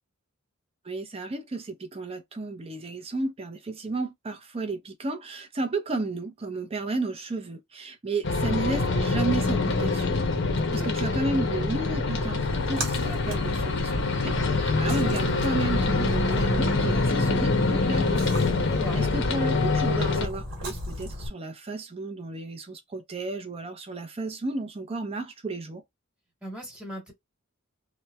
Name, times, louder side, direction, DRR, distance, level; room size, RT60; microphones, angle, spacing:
voice 1, 0.8-18.2 18.9-25.8, right 3 dB, 25° right, 0.5 m, -33 dB
sound 1, 8.2-20.3, left 3 dB, 55° left, 0.6 m, -25 dB
voice 2, 10.6-10.9 18.6-19.0 26.4-27.1, right 1 dB, 5° right, 1.2 m, -39 dB
Splash splatter, 12.4-21.3, equal, 65° right, 1.1 m, -35 dB
2.9 x 2.1 x 2.2 m
head